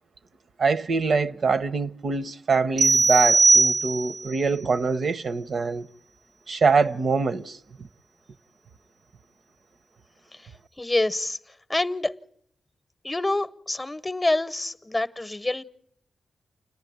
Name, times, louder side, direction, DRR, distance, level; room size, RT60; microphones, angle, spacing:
voice 1, 0.6-5.9 6.5-7.9, right 4 dB, 65° right, 0.7 m, -24 dB
sound 1, 2.8-4.3, right 3 dB, 90° right, 1.2 m, -19 dB
voice 2, 10.8-11.4 11.7-12.1 13.0-15.6, left 2 dB, 20° left, 0.8 m, -26 dB
29.0 x 10.5 x 9.3 m
cardioid pair, 80°, 0 cm